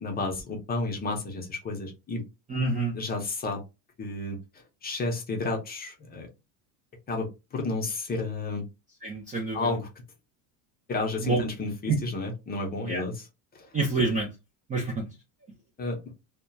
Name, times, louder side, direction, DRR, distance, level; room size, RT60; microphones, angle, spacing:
voice 1, 0.0-2.2 2.9-3.6 4.0-4.4 4.8-6.3 7.1-8.7 9.5-9.9 10.9-13.3 13.5-13.7 15.8-16.0, left 3 dB, 20° left, 2 dB, 0.6 m, -31 dB
voice 2, 2.5-2.9 9.0-9.7 11.2-11.4 11.9-12.0 12.9-13.0 13.7-14.3 14.7-15.1, right 3 dB, 20° right, -2 dB, 0.4 m, -27 dB
2.8 x 2.1 x 2.2 m, 0.25 s
cardioid pair, 140°, 44 cm